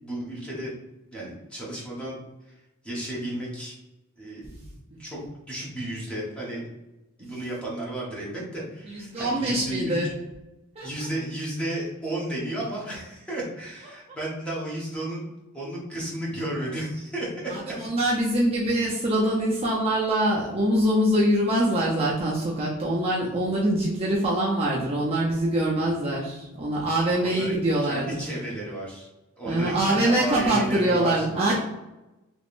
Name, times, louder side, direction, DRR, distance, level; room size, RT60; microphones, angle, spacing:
voice 1, 0.0-0.7 1.1-2.2 2.5-2.6 2.8-3.8 4.2-4.5 5.0-5.2 5.5-6.6 7.2-10.1 10.8-15.2 15.5-17.3 25.8-25.9 27.2-27.6 27.8-29.1 29.4-31.5, right 1 dB, 5° left, -5 dB, 0.9 m, -33 dB
voice 2, 8.9-10.1 10.8-11.1 17.5-28.3 29.5-31.5, right 1 dB, 30° right, -4 dB, 0.5 m, -24 dB
3.5 x 3.0 x 2.5 m, 1.0 s
head